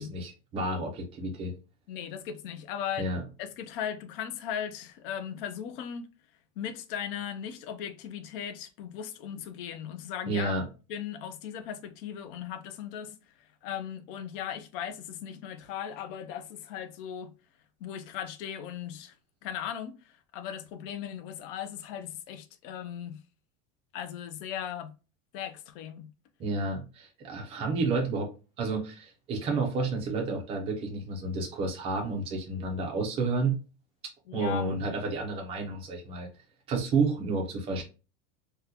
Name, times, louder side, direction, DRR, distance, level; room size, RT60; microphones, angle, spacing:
voice 1, 0.0-1.5 3.0-3.2 10.3-10.6 26.4-28.3 28.6-33.6 34.3-36.3 36.7-37.8, right 3 dB, 15° right, 0.4 m, -30 dB
voice 2, 1.9-6.1 6.6-10.5 10.9-13.2 13.6-17.3 17.8-19.1 19.4-20.0 20.3-23.2 23.9-24.9 25.3-26.1 34.3-34.7, left 9 dB, 50° left, 0.4 m, -37 dB
3.6 x 2.2 x 2.8 m
supercardioid pair, 175°, 37 cm